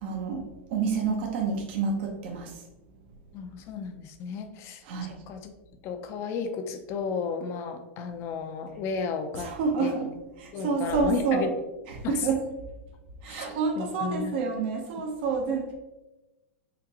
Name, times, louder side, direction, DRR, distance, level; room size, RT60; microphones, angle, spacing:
voice 1, 0.0-2.5 4.8-5.2 9.4-10.1 10.4-11.5 11.9-12.4 13.2-15.7, right 5 dB, 60° right, 1 dB, 0.8 m, -28 dB
voice 2, 3.3-4.8 5.3-5.5 5.8-10.1 10.5-11.5 12.0-12.3 13.3-13.5 13.8-14.3, left 6 dB, 40° left, 8 dB, 0.5 m, -33 dB
5.0 x 2.5 x 2.9 m, 1.0 s
hypercardioid pair, 120°, 7 cm